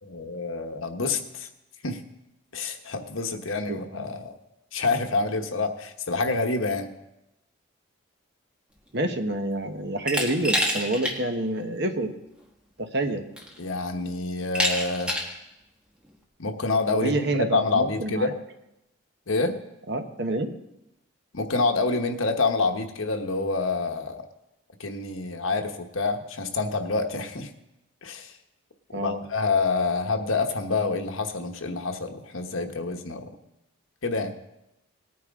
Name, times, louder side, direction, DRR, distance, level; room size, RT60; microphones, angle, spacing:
voice 1, 0.0-1.5 1.8-2.0 2.5-4.3 4.7-6.9 13.6-15.2 16.4-18.3 19.3-19.6 21.3-24.2 24.8-27.5 28.0-28.3 29.0-33.3 34.0-34.3, left 3 dB, 80° left, 5 dB, 1.2 m, -27 dB
voice 2, 3.7-4.1 8.9-12.1 12.8-13.3 16.9-18.3 19.9-20.5 28.9-29.2, right 1 dB, 55° right, 6 dB, 1.0 m, -28 dB
Glass, 10.1-11.2 11.6-11.7 12.8-12.9 13.4-13.8 14.6-15.4, equal, 5° right, 1.5 m, -26 dB
19.0 x 9.3 x 3.7 m, 0.91 s
head